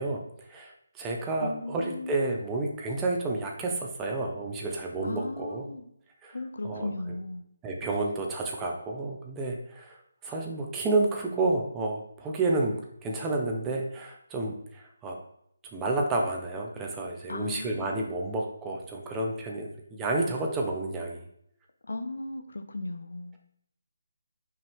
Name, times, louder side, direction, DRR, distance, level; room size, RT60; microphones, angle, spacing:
voice 1, 0.0-5.7 6.2-6.4 6.6-7.2 7.6-10.0 10.2-15.2 15.7-21.2, right 2 dB, 10° right, 0 dB, 0.8 m, -30 dB
voice 2, 1.4-2.3 5.0-5.8 6.3-7.4 17.3-18.1 21.8-23.4, left 2 dB, 80° left, 7 dB, 0.9 m, -36 dB
5.9 x 4.7 x 3.5 m, 0.72 s
hypercardioid pair, 170°, 0 cm